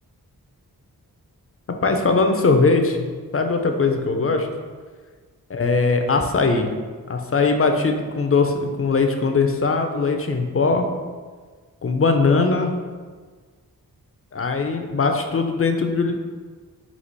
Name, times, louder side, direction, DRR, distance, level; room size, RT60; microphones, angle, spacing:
voice 1, 1.8-3.1 3.3-4.5 5.5-6.7 7.1-10.9 11.8-12.8 14.3-16.1, left 4 dB, 35° left, 5 dB, 0.5 m, -20 dB
4.1 x 2.4 x 4.4 m, 1.5 s
cardioid pair, 45°, 39 cm